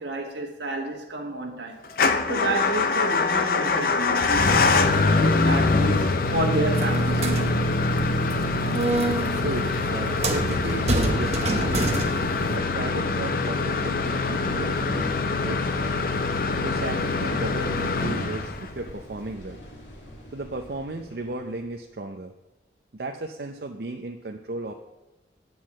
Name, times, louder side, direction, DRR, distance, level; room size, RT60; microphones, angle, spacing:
voice 1, 0.0-1.8 2.3-7.8, right 2 dB, 70° right, 1.5 m, -30 dB
Motor vehicle (road) / Engine starting / Idling, 1.9-18.9, left 3 dB, 50° left, 0.5 m, -24 dB
sound 1, 6.7-12.6, right 2 dB, 35° right, 0.9 m, -28 dB
voice 2, 9.4-12.0 12.5-16.0 16.6-19.6 20.3-22.3 22.9-24.7, right 2 dB, 55° right, 0.6 m, -35 dB
sound 2, 14.3-21.8, equal, 85° left, 2.5 m, -44 dB
9.2 x 4.7 x 7.4 m
head